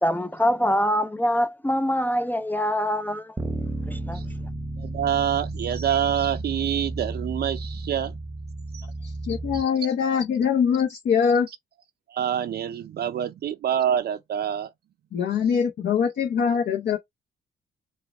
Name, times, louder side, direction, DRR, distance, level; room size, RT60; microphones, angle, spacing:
voice 1, 0.0-3.4 3.9-4.2, equal, 10° left, 0.4 m, -24 dB
Bass guitar, 3.4-9.6, right 2 dB, 10° right, 0.8 m, -33 dB
voice 2, 3.9-4.3 4.8-8.2 8.7-8.9 9.5-9.6 12.1-14.7, right 9 dB, 55° right, 0.5 m, -26 dB
voice 3, 9.0-11.5 15.1-17.0, left 7 dB, 60° left, 0.8 m, -23 dB
4.7 x 2.2 x 3.4 m
cardioid pair, 90°, 20 cm